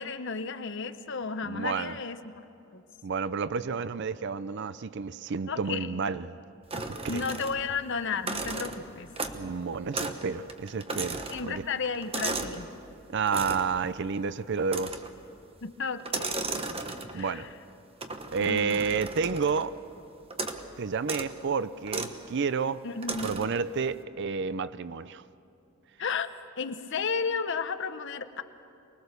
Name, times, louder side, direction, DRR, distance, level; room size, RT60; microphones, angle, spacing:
voice 1, 0.0-2.2 2.7-2.8 5.5-5.9 7.1-9.1 11.3-12.7 15.6-16.4 17.1-17.5 18.4-18.9 22.8-23.4 26.0-26.3 26.6-28.4, left 5 dB, 60° left, 0.9 m, -33 dB
voice 2, 1.4-2.0 3.0-6.4 6.9-7.3 9.3-11.7 13.1-15.0 17.1-17.5 18.3-19.8 20.8-22.8 23.2-25.2, right 5 dB, 60° right, 0.5 m, -30 dB
sound 1, 6.7-7.8 8.1-9.5 9.9-10.2 10.5-12.6 13.3-13.8 14.7-15.2 16.0-17.3 18.0-19.7 20.3-20.7 21.0-21.3 21.9-22.2 23.0-23.6, right 3 dB, 30° right, 1.1 m, -35 dB
24.5 x 21.0 x 6.7 m
head